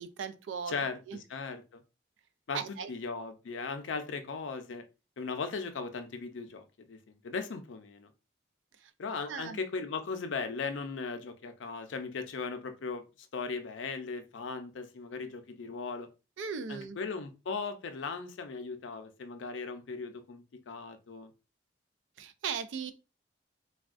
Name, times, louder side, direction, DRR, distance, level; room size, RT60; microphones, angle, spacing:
voice 1, 0.0-0.7 1.1-1.2 2.5-2.9 9.3-9.6 16.4-17.0 22.2-22.9, right 6 dB, 85° right, 0.4 m, -37 dB
voice 2, 0.7-1.8 2.5-4.8 5.2-8.1 9.0-16.1 16.7-21.3, left 4 dB, 90° left, 0.5 m, -38 dB
3.4 x 2.2 x 2.4 m
head